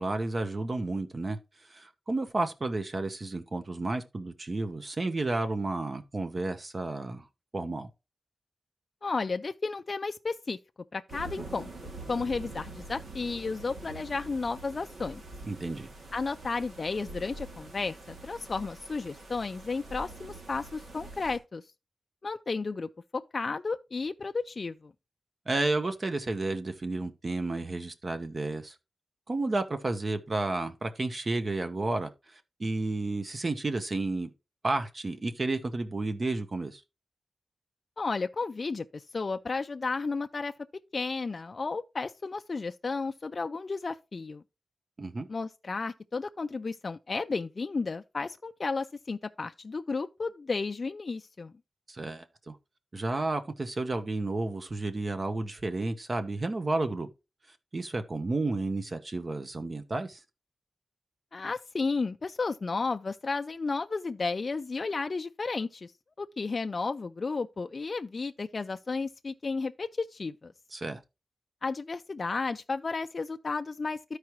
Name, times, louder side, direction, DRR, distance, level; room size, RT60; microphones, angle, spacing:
voice 1, 0.0-1.4 1.7-7.2 7.5-7.9 15.4-15.9 25.5-28.7 29.3-34.3 34.6-36.8 45.0-45.3 51.9-52.6 52.9-57.1 57.7-60.2 70.7-71.0, right 2 dB, 35° right, 0.9 m, -31 dB
voice 2, 9.0-10.6 10.9-11.7 12.1-15.2 16.1-21.6 22.2-24.9 38.0-40.5 40.9-44.4 45.3-51.5 61.3-65.9 66.2-70.5 71.6-74.2, left 4 dB, 40° left, 0.4 m, -33 dB
sound 1, 11.1-21.4, right 2 dB, 70° right, 2.1 m, -45 dB
13.5 x 4.8 x 3.0 m
wide cardioid pair, 150°, 0 cm